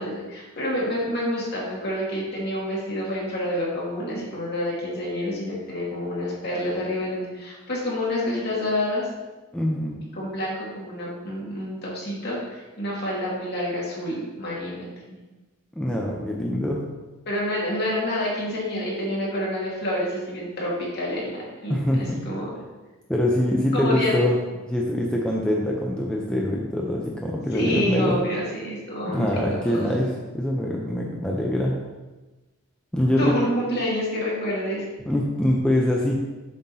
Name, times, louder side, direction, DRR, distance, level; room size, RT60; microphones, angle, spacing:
voice 1, 0.0-9.1 10.1-15.2 17.3-22.5 23.7-24.2 27.5-29.9 33.2-34.9, left 1 dB, 50° left, -5 dB, 2.1 m, -28 dB
voice 2, 9.5-10.0 15.8-16.8 21.7-22.2 23.1-24.4 24.7-28.2 29.0-31.7 32.9-33.3 35.1-36.2, left 1 dB, 5° left, -3 dB, 0.6 m, -24 dB
7.4 x 5.9 x 2.8 m, 1.1 s
head